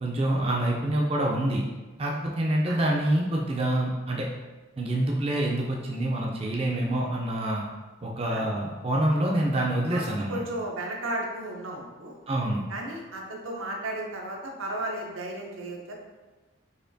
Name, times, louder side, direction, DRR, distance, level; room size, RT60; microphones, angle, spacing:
voice 1, 0.0-1.6 2.0-4.3 4.8-7.6 8.0-10.4 12.3-12.6, right 1 dB, 30° right, -2 dB, 0.3 m, -26 dB
voice 2, 10.3-12.2 12.7-15.9, right 1 dB, 90° right, 0 dB, 0.7 m, -34 dB
4.1 x 2.9 x 2.6 m, 1.2 s
head